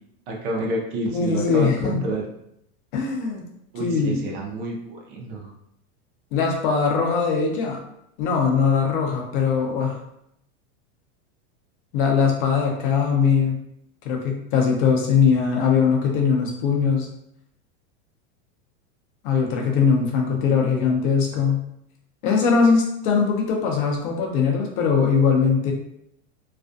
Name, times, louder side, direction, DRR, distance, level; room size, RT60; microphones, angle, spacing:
voice 1, 0.3-2.3 3.7-5.5, right 1 dB, 45° right, 0 dB, 0.5 m, -29 dB
voice 2, 1.1-2.0 2.9-3.4 3.8-4.2 6.3-7.8 8.2-10.0 11.9-13.6 14.0-17.1 19.2-21.6 22.2-25.7, left 6 dB, 45° left, 0 dB, 0.5 m, -21 dB
2.4 x 2.2 x 2.5 m, 0.77 s
supercardioid pair, 160°, 38 cm